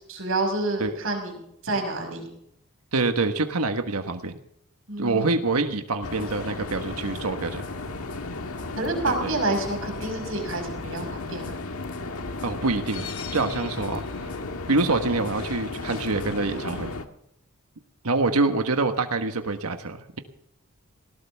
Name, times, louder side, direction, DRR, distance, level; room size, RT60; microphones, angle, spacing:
voice 1, 0.1-1.3 1.6-2.2 4.9-5.4 8.8-11.5, right 2 dB, 65° right, 3 dB, 5.6 m, -28 dB
voice 2, 2.9-4.3 5.0-7.7 9.1-9.3 12.4-14.3 14.7-16.9 18.0-20.2, right 3 dB, 85° right, 7 dB, 1.4 m, -26 dB
sound 1, 6.0-17.0, left 3 dB, 80° left, 1.6 m, -34 dB
19.5 x 18.0 x 3.5 m, 0.77 s
head